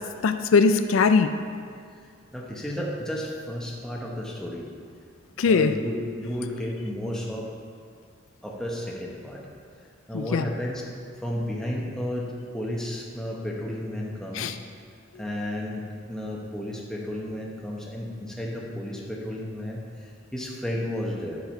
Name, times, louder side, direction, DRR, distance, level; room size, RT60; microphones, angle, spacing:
voice 1, 0.2-1.3 5.4-5.8 10.1-10.5 14.3-14.6 15.1-15.2, left 5 dB, 75° left, 9 dB, 0.4 m, -21 dB
voice 2, 2.0-4.7 5.4-7.5 8.4-9.4 10.1-10.8 11.2-14.5 15.1-21.4, left 1 dB, 5° left, -3 dB, 1.0 m, -33 dB
10.5 x 7.0 x 4.4 m, 2.2 s
head